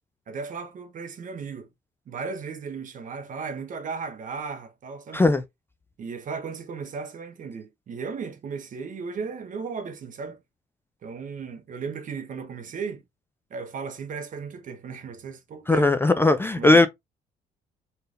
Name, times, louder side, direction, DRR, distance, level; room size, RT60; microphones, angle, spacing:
voice 1, 0.3-1.7 2.1-5.2 6.0-10.4 11.0-13.0 13.5-15.9 16.6-16.9, right 5 dB, 50° right, 1.1 m, -35 dB
voice 2, 5.1-5.4 15.7-16.9, left 2 dB, 15° left, 0.4 m, -18 dB
4.5 x 3.3 x 2.6 m
cardioid pair, 100°, 17 cm